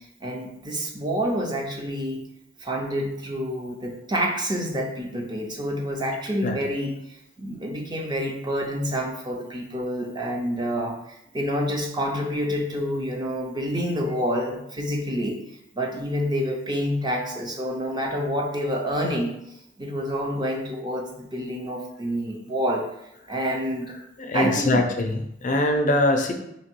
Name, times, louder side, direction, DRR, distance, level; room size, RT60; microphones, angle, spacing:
voice 1, 0.2-2.2 2.6-11.0 11.3-15.4 15.7-19.3 19.8-22.9 23.3-24.0 24.3-24.8, equal, 25° right, 1 dB, 0.6 m, -28 dB
voice 2, 24.2-26.3, left 1 dB, 40° left, 4 dB, 0.5 m, -22 dB
3.4 x 2.9 x 4.5 m, 0.81 s
head